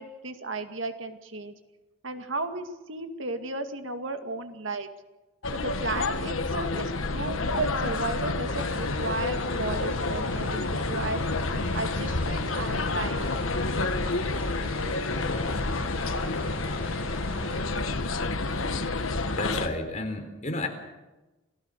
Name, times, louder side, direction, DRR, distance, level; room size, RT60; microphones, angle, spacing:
voice 1, 0.0-1.5 2.0-4.9 5.5-11.2 11.7-13.5, right 2 dB, 75° right, 7 dB, 2.2 m, -34 dB
sound 1, 5.4-19.7, left 3 dB, 85° left, 1.5 m, -29 dB
sound 2, 8.4-17.6, equal, 15° right, 4.7 m, -42 dB
voice 2, 19.4-20.7, left 2 dB, 35° left, 4 dB, 3.9 m, -31 dB
28.5 x 17.0 x 6.7 m, 1.1 s
head